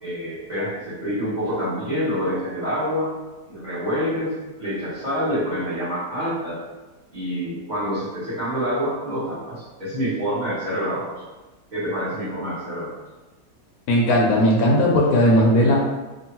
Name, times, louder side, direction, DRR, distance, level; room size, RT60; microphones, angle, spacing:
voice 1, 0.0-3.1 3.5-6.6 7.1-11.1 11.7-12.9, equal, 30° right, -11 dB, 1.0 m, -27 dB
voice 2, 13.9-15.8, equal, 75° left, -2 dB, 1.0 m, -17 dB
2.9 x 2.4 x 2.8 m, 1.1 s
omnidirectional pair, 1.7 m